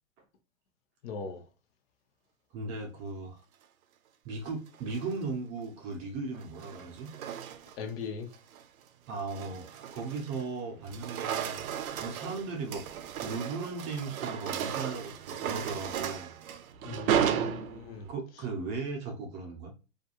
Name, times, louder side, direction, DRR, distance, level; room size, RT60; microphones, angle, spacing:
voice 1, 1.0-1.4 7.8-8.3 16.8-18.1, left 5 dB, 45° left, 0.7 m, -39 dB
voice 2, 2.5-3.4 4.2-7.1 9.1-12.9 13.2-16.3 18.1-19.7, right 4 dB, 35° right, 0.6 m, -37 dB
sound 1, 4.7-5.2 6.3-7.9 8.3-8.6 9.1-10.5 10.8-18.1, right 9 dB, 80° right, 0.5 m, -35 dB
2.4 x 2.2 x 2.8 m
hypercardioid pair, 125°, 41 cm